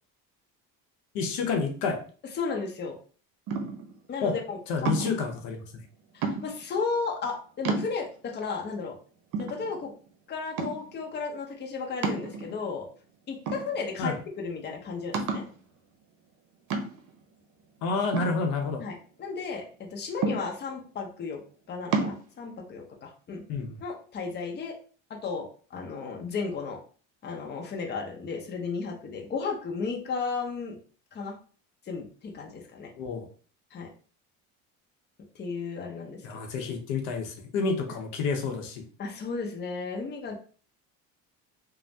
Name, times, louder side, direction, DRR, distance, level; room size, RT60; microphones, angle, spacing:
voice 1, 1.1-2.0 4.2-4.3 4.7-5.6 14.0-14.1 17.8-18.8 23.5-23.7 33.0-33.3 36.2-38.8, left 4 dB, 75° left, 3 dB, 0.7 m, -29 dB
voice 2, 2.3-3.0 4.1-4.9 6.1-8.9 9.4-9.9 10.3-12.9 13.3-15.5 18.8-21.4 21.7-23.4 23.8-24.7 25.1-26.8 27.2-30.8 31.1-31.4 31.8-32.9 33.7-33.9 35.3-36.3 37.9-38.0 39.0-40.4, left 4 dB, 30° left, 1 dB, 0.7 m, -34 dB
sound 1, 3.5-3.9 4.8-5.3 6.2-6.7 7.2-7.3 7.6-8.3 8.8-8.9 9.3-10.1 10.6-11.0 12.0-12.8 13.5-14.1 14.4-14.5 15.1-15.6 16.7-17.2 18.1-19.0 20.2-20.8 21.9-22.2, right 4 dB, 60° right, 0.7 m, -31 dB
3.2 x 2.1 x 2.7 m, 0.42 s
supercardioid pair, 105°, 36 cm